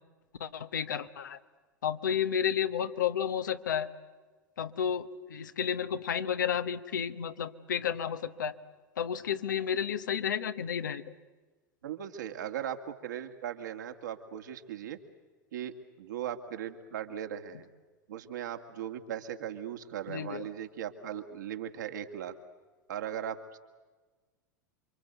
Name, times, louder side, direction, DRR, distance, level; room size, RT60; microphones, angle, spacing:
voice 1, 0.4-1.4 1.8-3.9 4.6-8.6 9.0-11.1 20.1-20.5, left 8 dB, 75° left, 10 dB, 1.3 m, -32 dB
voice 2, 11.8-15.0 15.5-17.7 18.1-22.3 22.9-23.6, right 10 dB, 70° right, 6 dB, 2.1 m, -38 dB
28.0 x 25.0 x 8.2 m, 1.3 s
figure-of-eight pair, 85°, 10 cm